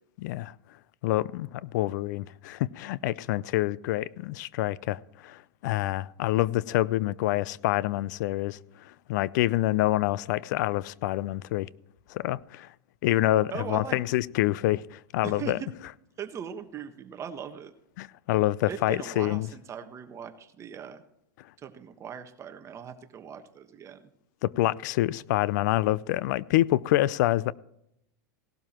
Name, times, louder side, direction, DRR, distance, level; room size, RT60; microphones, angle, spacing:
voice 1, 0.2-0.5 1.0-8.6 8.8-11.7 12.1-12.7 13.0-15.6 18.0-19.5 24.4-27.5, left 16 dB, 65° left, 0.5 m, -27 dB
voice 2, 13.5-14.0 15.2-15.7 16.2-17.7 18.7-21.0 21.6-24.1, right 8 dB, 30° right, 1.3 m, -39 dB
17.5 x 12.5 x 3.0 m
hypercardioid pair, 120°, 10 cm